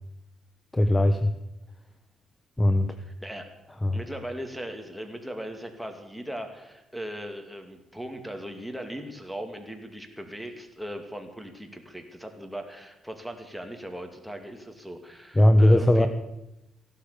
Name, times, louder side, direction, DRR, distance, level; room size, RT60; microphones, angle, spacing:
voice 1, 0.7-1.3 2.6-2.9 3.8-4.0 15.4-16.1, left 1 dB, 15° left, 9 dB, 1.0 m, -19 dB
voice 2, 3.1-3.4 3.9-16.1, equal, ahead, 4 dB, 2.4 m, -38 dB
15.5 x 12.0 x 6.9 m, 0.91 s
cardioid pair, 90°, 0 cm